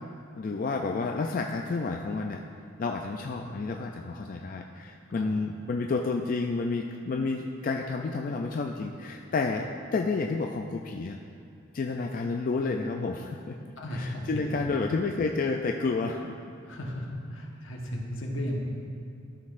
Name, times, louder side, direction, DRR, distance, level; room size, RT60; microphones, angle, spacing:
voice 1, 0.4-2.4 2.8-11.2 11.7-16.3, left 3 dB, 40° left, 2 dB, 0.3 m, -30 dB
voice 2, 13.8-14.2 16.6-18.6, equal, 75° left, 0 dB, 1.2 m, -35 dB
13.0 x 6.3 x 2.5 m, 2.5 s
head